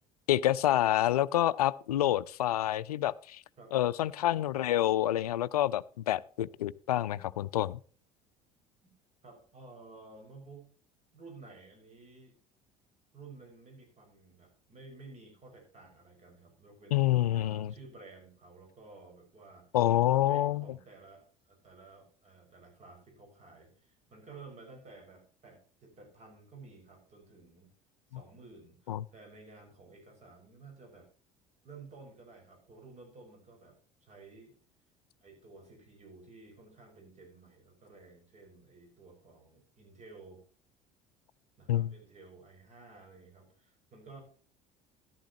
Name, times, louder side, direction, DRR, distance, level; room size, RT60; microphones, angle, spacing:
voice 1, 0.3-3.4 3.7-7.8 16.9-17.7 19.7-20.6 28.9-29.0 41.7-41.9, left 13 dB, 75° left, 20 dB, 0.4 m, -28 dB
voice 2, 9.2-10.7 11.1-12.4 13.1-19.7 20.1-27.7 28.1-31.1 31.6-34.6 35.2-40.4 41.6-44.2, right 3 dB, 35° right, 3 dB, 6.0 m, -53 dB
13.5 x 11.5 x 3.0 m, 0.42 s
figure-of-eight pair, 65°, 19 cm